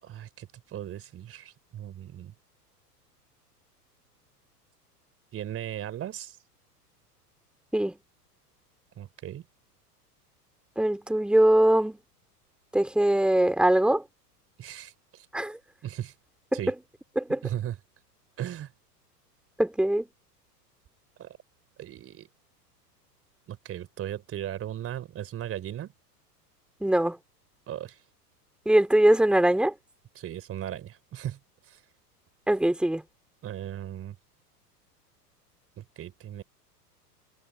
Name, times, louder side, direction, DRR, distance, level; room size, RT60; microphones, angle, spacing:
voice 1, 0.0-2.3 5.3-6.4 9.0-9.5 14.6-15.3 15.8-16.1 16.5-16.7 17.4-17.8 18.4-18.7 21.2-21.4 21.8-22.3 23.5-25.9 27.7-28.0 30.2-31.8 33.4-34.2 35.8-36.4, right 11 dB, 30° right, 3.7 m, -37 dB
voice 2, 10.8-12.0 12.7-14.0 15.3-15.6 16.5-16.7 17.2-17.4 19.6-20.1 26.8-27.2 28.7-29.7 32.5-33.0, right 1 dB, ahead, 4.1 m, -22 dB
figure-of-eight pair, 95°, 48 cm